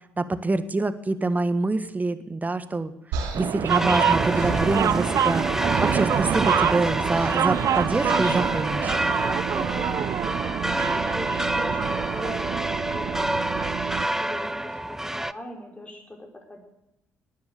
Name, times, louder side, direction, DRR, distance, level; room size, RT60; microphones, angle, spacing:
voice 1, 0.2-2.9 3.4-5.5 5.8-8.9, right 2 dB, 25° right, 12 dB, 1.6 m, -25 dB
sound 1, 3.1-5.4 5.7-6.1 7.1-7.4 8.8-9.1, right 4 dB, 75° right, 2.6 m, -35 dB
sound 2, 3.3-14.1, right 9 dB, 55° right, 0.7 m, -26 dB
sound 3, 3.7-15.3, right 1 dB, 5° right, 0.7 m, -27 dB
voice 2, 9.5-13.5 14.0-16.6, left 1 dB, 20° left, 1 dB, 5.4 m, -40 dB
19.0 x 10.5 x 6.8 m, 0.88 s
hypercardioid pair, 50°, 7 cm